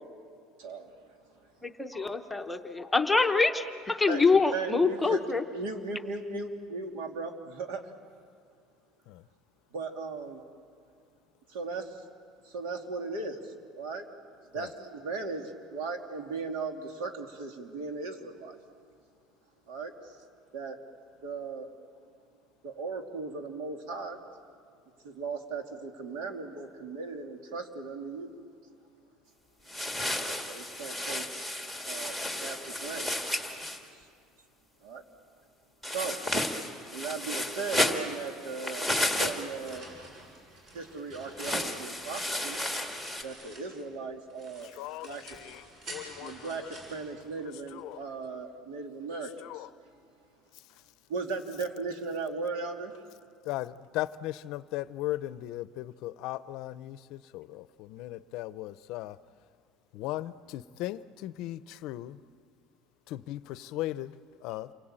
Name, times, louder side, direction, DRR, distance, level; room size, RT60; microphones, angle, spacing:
voice 1, 1.6-5.4, left 4 dB, 5° left, 5 dB, 0.8 m, -25 dB
voice 2, 4.5-5.2 5.5-7.8 9.7-10.4 11.5-12.0 12.4-14.1 14.5-18.6 19.7-19.9 20.5-20.8 21.2-21.7 22.6-24.2 25.0-28.3 30.2-31.3 31.9-32.2 32.4-33.1 34.8-35.0 35.9-36.2 36.9-39.9 40.7-42.6 43.2-44.7 45.0-45.3 46.2-49.7 51.1-52.9, right 4 dB, 80° right, 4 dB, 2.8 m, -37 dB
sound 1, 29.7-33.8 35.8-39.8 41.4-43.2, left 1 dB, 10° right, 1.7 m, -32 dB
sound 2, 39.3-44.0 44.3-47.8, right 1 dB, 40° right, 7.4 m, -49 dB
voice 3, 44.6-46.7 47.7-48.0 49.4-49.7 53.4-59.2 59.9-62.2 63.1-64.7, left 15 dB, 55° left, 15 dB, 0.6 m, -38 dB
28.5 x 23.0 x 8.9 m, 2.2 s
cardioid pair, 180°, 0 cm